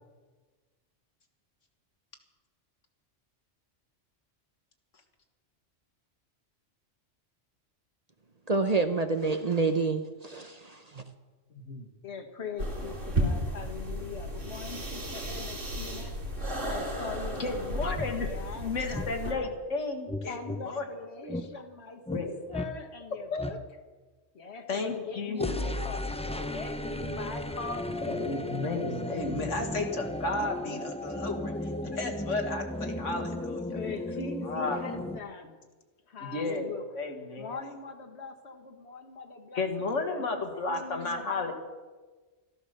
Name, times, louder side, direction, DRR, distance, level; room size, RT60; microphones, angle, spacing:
voice 1, 8.5-11.0, right 3 dB, 40° right, 8 dB, 0.8 m, -28 dB
voice 2, 11.5-11.9 17.4-20.4 20.6-20.9 21.2-21.6 22.1-22.4 23.3-23.5 24.7-25.7 28.0-31.5 31.9-33.6 34.4-34.9 36.2-37.6 39.5-41.5, left 3 dB, 85° left, 4 dB, 2.1 m, -33 dB
voice 3, 12.0-16.1 16.7-19.5 20.2-23.6 24.4-28.2 29.5-29.6 33.7-35.6 36.1-36.9 37.4-41.5, left 4 dB, 65° left, 6 dB, 1.7 m, -42 dB
sound 1, 12.6-19.3, equal, 90° right, 2.9 m, -34 dB
sound 2, 17.5-17.6 17.9-18.1 18.9-19.1 20.1-20.6 21.3-21.5 22.1-22.3 22.5-22.7 23.4-23.6 25.4-35.2, left 1 dB, 10° left, 0.4 m, -35 dB
13.5 x 13.0 x 6.6 m, 1.3 s
omnidirectional pair, 1.2 m